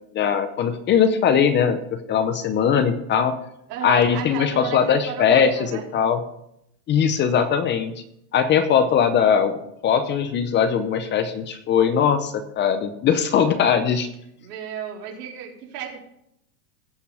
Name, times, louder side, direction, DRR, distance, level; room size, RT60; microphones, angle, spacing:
voice 1, 0.1-3.4 3.8-6.2 6.9-7.9 8.3-14.1, left 7 dB, 25° left, 11 dB, 0.6 m, -20 dB
voice 2, 3.7-5.9 14.4-16.0, right 8 dB, 80° right, -1 dB, 3.8 m, -33 dB
17.0 x 5.8 x 4.9 m, 0.79 s
supercardioid pair, 145°, 47 cm